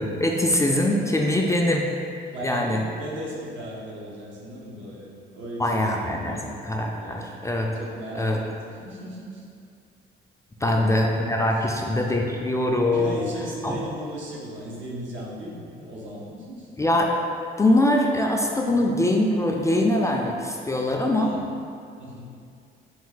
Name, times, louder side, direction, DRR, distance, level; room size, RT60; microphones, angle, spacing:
voice 1, 0.0-1.9 2.4-2.8 5.6-6.4 6.7-7.8 8.2-8.4 10.6-13.2 13.6-13.8 16.8-17.1 17.6-21.3, left 1 dB, 15° left, 0 dB, 0.3 m, -23 dB
voice 2, 2.3-6.6 7.0-7.3 7.7-9.5 10.6-11.7 12.8-16.7 18.6-18.9 21.2-21.4 22.0-22.3, equal, 70° right, -4 dB, 0.9 m, -36 dB
4.2 x 2.4 x 3.9 m, 2.4 s
cardioid pair, 90°, 20 cm